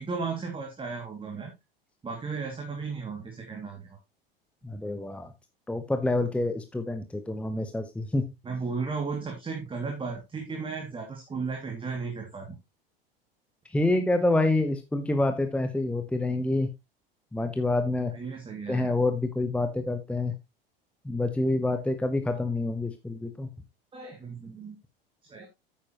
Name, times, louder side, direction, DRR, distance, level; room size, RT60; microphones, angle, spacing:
voice 1, 0.0-1.5 2.0-3.8 8.4-12.6 18.1-18.9 23.9-24.8 25.3-25.5, right 4 dB, 15° right, 2 dB, 2.3 m, -35 dB
voice 2, 4.6-5.3 5.7-8.3 13.7-16.7 17.3-18.1 18.7-20.3 21.0-23.5, left 2 dB, 5° left, 8 dB, 1.0 m, -27 dB
9.7 x 8.7 x 2.9 m, 0.21 s
figure-of-eight pair, 80°, 29 cm